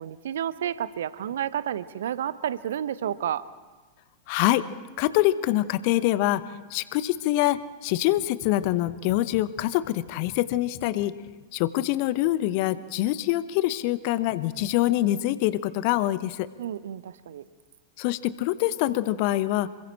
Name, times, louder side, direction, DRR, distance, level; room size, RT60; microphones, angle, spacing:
voice 1, 0.0-3.4 16.6-17.4, right 10 dB, 60° right, 16 dB, 0.7 m, -31 dB
voice 2, 4.3-4.7 5.0-11.1 11.5-16.5 18.0-19.7, left 15 dB, 45° left, 16 dB, 0.9 m, -25 dB
27.5 x 23.5 x 4.4 m, 1.3 s
figure-of-eight pair, 90°, 0 cm